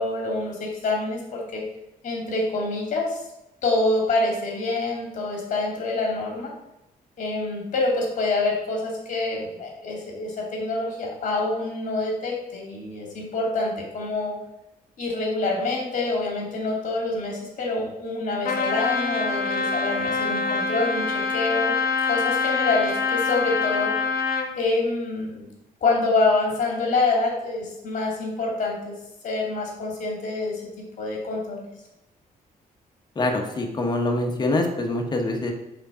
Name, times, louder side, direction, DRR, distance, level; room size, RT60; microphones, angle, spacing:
voice 1, 0.0-1.6 2.0-3.3 3.6-6.5 7.2-14.3 15.0-21.8 22.0-23.9 24.6-25.5 25.8-28.9 29.2-30.6 31.0-31.7, left 3 dB, 55° left, -1 dB, 2.3 m, -26 dB
Trumpet, 18.4-24.5, left 4 dB, 75° left, 0.9 m, -25 dB
voice 2, 33.2-35.5, left 2 dB, 30° left, 2 dB, 1.1 m, -24 dB
5.0 x 3.9 x 5.6 m, 0.87 s
cardioid pair, 125°, 15 cm